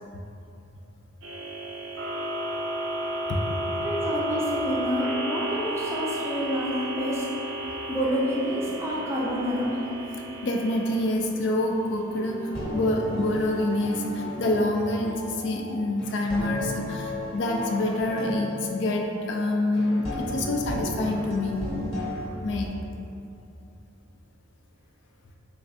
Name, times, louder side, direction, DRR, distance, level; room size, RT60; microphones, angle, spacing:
sound 1, 1.2-15.5, right 1 dB, 65° right, 0.5 m, -34 dB
voice 1, 3.8-7.2 7.9-9.8, equal, 15° right, -6 dB, 0.5 m, -28 dB
voice 2, 10.4-21.6 22.4-22.7, left 1 dB, 60° left, 1 dB, 0.3 m, -27 dB
sound 2, 12.1-22.2, left 1 dB, 25° left, 0.8 m, -34 dB
3.4 x 3.1 x 2.5 m, 2.6 s
head